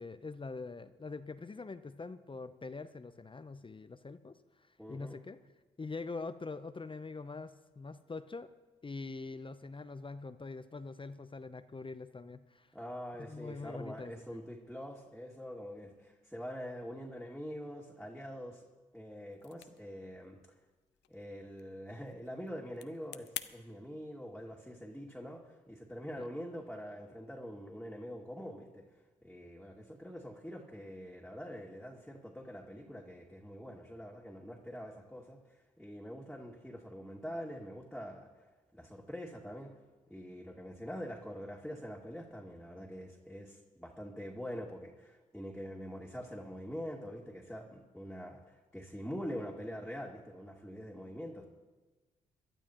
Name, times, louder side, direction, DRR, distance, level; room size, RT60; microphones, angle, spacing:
voice 1, 0.0-5.4 5.8-8.5 8.8-12.7 13.2-14.1 26.2-26.3, left 3 dB, 25° left, 11 dB, 0.8 m, -44 dB
voice 2, 4.8-5.2 12.7-18.6 18.9-20.4 21.1-28.8 29.2-38.3 38.7-39.8 40.1-51.4, equal, ahead, -3 dB, 2.5 m, -44 dB
sound 1, 19.3-23.5, left 12 dB, 70° left, 0.7 m, -49 dB
22.5 x 12.0 x 3.1 m, 1.2 s
hypercardioid pair, 40°, 19 cm